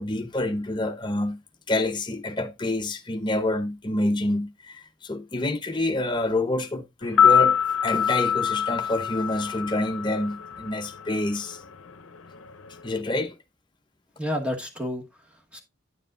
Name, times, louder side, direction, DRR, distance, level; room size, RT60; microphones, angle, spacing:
voice 1, 0.0-1.4 1.7-11.6 12.8-13.3, left 1 dB, 20° left, 0.7 m, -27 dB
sound 1, 7.0-11.2 11.5-11.6, left 8 dB, 90° left, 0.7 m, -23 dB
voice 2, 14.2-15.6, left 1 dB, 5° right, 1.3 m, -31 dB
9.9 x 7.1 x 2.5 m
head